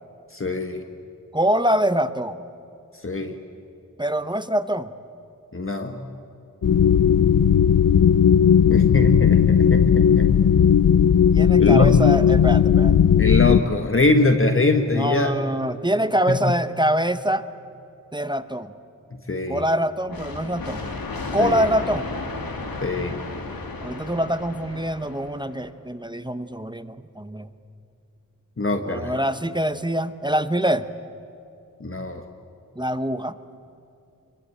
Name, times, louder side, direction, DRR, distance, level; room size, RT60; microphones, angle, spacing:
voice 1, 0.3-0.8 3.0-3.4 5.5-6.0 8.7-10.3 11.6-12.0 13.2-15.4 16.3-16.4 19.1-19.6 21.4-21.7 22.8-23.2 28.6-29.2 31.8-32.2, left 2 dB, 40° left, 5 dB, 1.5 m, -23 dB
voice 2, 1.3-2.4 4.0-4.9 11.3-13.0 14.9-17.4 18.1-18.7 19.5-20.8 21.3-22.1 23.8-27.5 28.9-30.9 32.8-33.4, equal, 15° right, 11 dB, 0.9 m, -24 dB
sound 1, 6.6-13.6, left 8 dB, 70° left, 0.7 m, -16 dB
sound 2, 20.1-25.7, left 3 dB, 90° left, 2.8 m, -34 dB
28.0 x 23.0 x 9.1 m, 2.7 s
wide cardioid pair, 100°, 34 cm